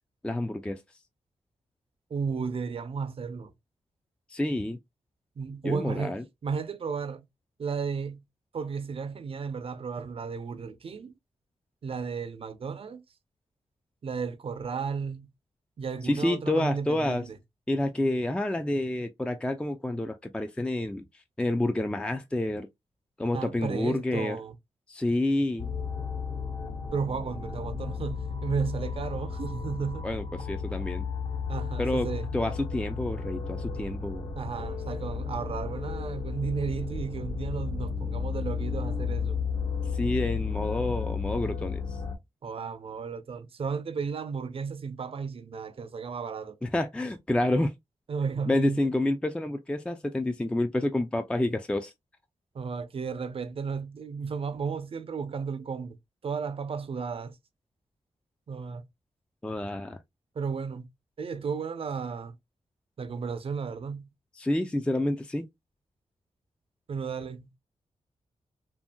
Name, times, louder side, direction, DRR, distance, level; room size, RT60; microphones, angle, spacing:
voice 1, 0.2-0.8 4.3-4.8 5.6-6.2 16.0-17.2 17.7-22.7 23.2-24.4 24.9-25.7 30.0-31.0 31.8-34.3 39.9-42.0 46.6-47.7 48.5-51.9 59.4-60.0 64.4-65.5, left 1 dB, 10° left, 0.3 m, -29 dB
voice 2, 2.1-3.5 5.4-6.2 6.4-7.2 7.6-8.2 8.5-11.1 11.8-13.0 14.0-15.3 15.8-17.3 23.3-24.5 26.9-30.1 31.5-32.3 34.3-39.4 42.4-46.6 48.1-48.9 52.5-56.0 56.2-57.4 58.5-58.8 60.4-60.9 61.2-62.3 63.0-64.1 66.9-67.6, right 5 dB, 50° right, 0.5 m, -34 dB
sound 1, 25.6-42.2, left 5 dB, 65° left, 1.2 m, -33 dB
2.7 x 2.6 x 2.2 m
cardioid pair, 70°, 12 cm